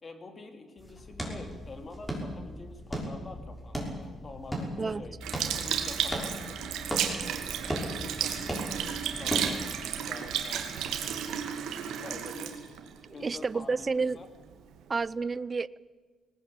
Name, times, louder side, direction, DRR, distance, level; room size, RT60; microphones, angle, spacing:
voice 1, 0.0-6.6 7.3-9.7 9.9-11.2 12.0-12.7 13.1-14.3, left 3 dB, 35° left, 6 dB, 3.2 m, -47 dB
sound 1, 0.8-9.8, equal, 10° left, 6.1 m, -37 dB
Sink (filling or washing) / Liquid, 5.2-13.8 14.4-14.5, right 9 dB, 85° right, 2.4 m, -33 dB
voice 2, 13.2-14.2 14.9-15.8, right 4 dB, 30° right, 19 dB, 0.6 m, -30 dB
19.0 x 18.5 x 8.8 m, 1.4 s
cardioid pair, 90°, 0 cm